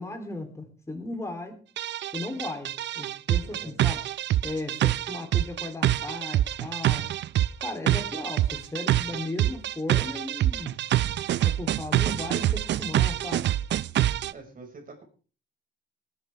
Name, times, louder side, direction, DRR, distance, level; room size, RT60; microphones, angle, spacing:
voice 1, 0.0-1.6 2.1-4.0 4.4-7.1 7.6-10.8 11.4-13.5, left 2 dB, 15° left, 3 dB, 3.3 m, -36 dB
sound 1, 1.8-14.3, right 13 dB, 65° right, 0.5 m, -25 dB
voice 2, 3.4-3.8 14.3-15.0, right 3 dB, 45° right, 3 dB, 5.5 m, -46 dB
20.0 x 11.0 x 3.5 m, 0.38 s
cardioid pair, 90°, 20 cm